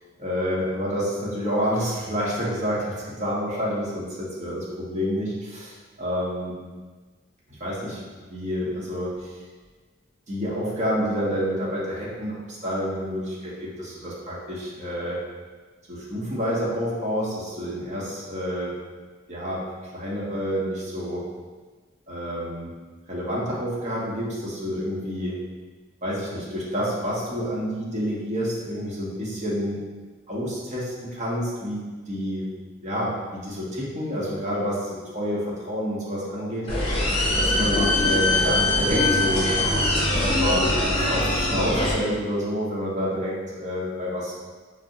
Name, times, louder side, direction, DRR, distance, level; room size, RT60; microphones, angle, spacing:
voice 1, 0.2-6.6 7.6-8.0 8.3-9.4 10.3-15.2 15.9-18.7 19.3-19.6 19.9-21.3 22.1-22.7 23.1-25.4 26.0-29.8 30.3-32.5 32.8-37.0 37.4-39.5 40.1-40.7 40.9-44.3, equal, 40° right, -6 dB, 0.9 m, -28 dB
sound 1, 36.7-41.9, left 1 dB, 30° left, 0.7 m, -22 dB
5.0 x 2.0 x 2.6 m, 1.4 s
head